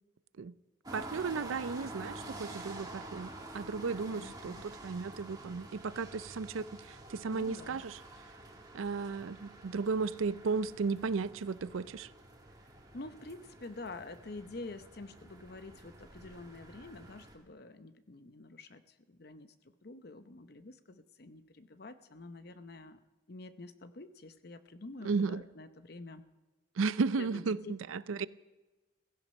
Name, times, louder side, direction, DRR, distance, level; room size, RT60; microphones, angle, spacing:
sound 1, 0.8-17.3, right 1 dB, 20° right, 2.0 m, -49 dB
voice 1, 0.9-8.0 8.7-12.1 25.0-25.4 26.8-28.3, right 4 dB, 90° right, 0.5 m, -34 dB
voice 2, 4.1-4.7 7.3-7.8 12.9-19.5 19.8-23.0 23.3-26.2 27.2-27.7, left 2 dB, 50° left, 0.7 m, -48 dB
16.0 x 15.0 x 5.3 m
head